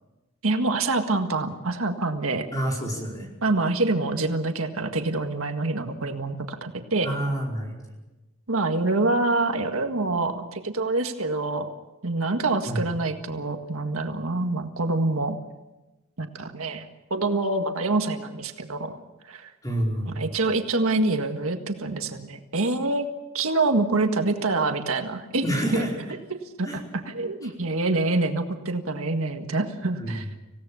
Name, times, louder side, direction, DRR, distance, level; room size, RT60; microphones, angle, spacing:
voice 1, 0.4-2.5 3.4-7.1 8.5-11.7 12.0-15.4 16.2-19.0 19.3-19.5 20.1-23.1 23.3-25.4 25.7-25.8 26.6-30.3, right 2 dB, 80° right, 6 dB, 1.8 m, -26 dB
voice 2, 2.5-3.3 7.0-7.9 12.7-12.8 19.6-20.3 25.4-26.0 26.6-26.8 27.4-27.5 30.0-30.2, right 1 dB, 15° left, -1 dB, 4.9 m, -28 dB
26.5 x 17.0 x 7.1 m, 1.1 s
head